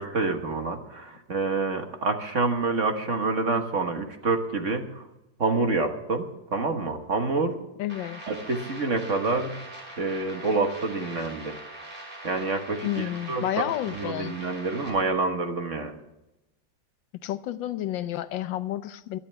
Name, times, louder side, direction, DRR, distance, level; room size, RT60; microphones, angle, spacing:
voice 1, 0.0-5.0 5.4-7.5 8.3-9.5 10.0-11.5 12.2-13.4 13.9-16.0, right 3 dB, 45° right, 5 dB, 1.5 m, -27 dB
voice 2, 7.8-8.2 12.8-14.3 17.2-19.2, left 13 dB, 80° left, 13 dB, 1.4 m, -30 dB
sound 1, 7.9-14.9, right 1 dB, 25° right, 4.7 m, -42 dB
23.0 x 11.0 x 3.4 m, 0.94 s
omnidirectional pair, 2.1 m